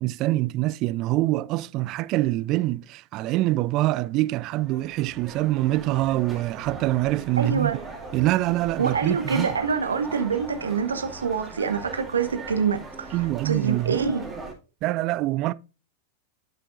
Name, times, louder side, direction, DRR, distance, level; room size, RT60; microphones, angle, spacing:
voice 1, 0.0-7.7 8.1-9.5 13.1-14.0 14.8-15.5, right 17 dB, 40° right, 0.3 m, -25 dB
sound 1, 4.3-14.5, right 3 dB, 10° right, 2.3 m, -40 dB
voice 2, 7.4-7.9 8.8-13.2 13.4-14.3, right 5 dB, 70° right, 1.0 m, -26 dB
11.5 x 5.7 x 2.6 m
figure-of-eight pair, 90°, 0 cm